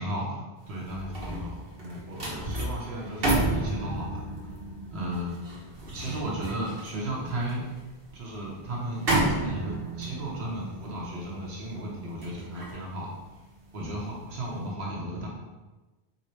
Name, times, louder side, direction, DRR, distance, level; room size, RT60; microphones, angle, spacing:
voice 1, 0.0-4.2 4.9-5.3 5.8-7.7 8.1-13.1 13.7-15.3, right 1 dB, 85° right, -3 dB, 1.3 m, -34 dB
sound 1, 0.7-14.0 14.4-14.6, right 2 dB, 65° right, 1.2 m, -32 dB
3.9 x 2.7 x 4.4 m, 1.2 s
omnidirectional pair, 1.0 m